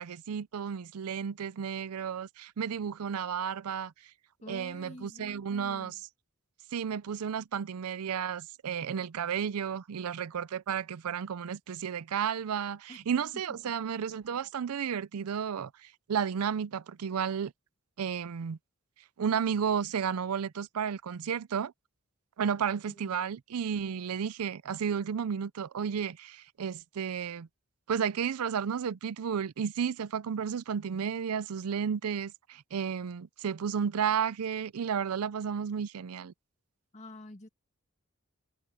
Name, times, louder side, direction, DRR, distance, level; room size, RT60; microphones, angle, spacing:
voice 1, 0.0-4.1 4.5-6.0 6.7-17.5 18.0-18.6 19.2-21.7 22.4-27.5 27.9-36.3, right 7 dB, 90° right, 0.5 m, -32 dB
voice 2, 4.4-6.0 12.9-13.0 13.6-13.7 22.9-23.2 36.9-37.5, left 1 dB, 30° left, 2.4 m, -48 dB
head